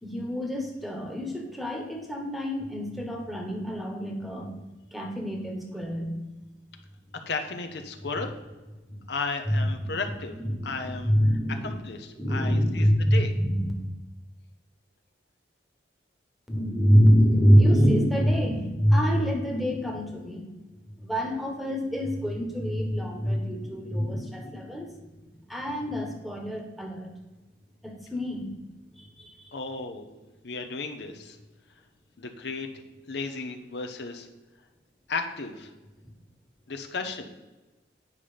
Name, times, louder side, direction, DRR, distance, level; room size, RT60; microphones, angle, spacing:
voice 1, 0.0-4.5 4.9-6.2 8.9-9.0 9.5-9.9 10.3-11.7 12.2-13.7 16.5-20.4 21.0-24.9 25.5-27.1 27.8-28.5 29.0-29.5, equal, ahead, 2 dB, 1.2 m, -25 dB
voice 2, 7.3-8.3 9.1-10.4 10.6-11.1 11.6-13.3 29.5-30.1 30.4-31.4 32.2-32.7 33.1-34.3 35.1-35.7 36.7-37.3, left 4 dB, 65° left, 5 dB, 0.8 m, -34 dB
9.5 x 5.6 x 5.1 m, 1.1 s
head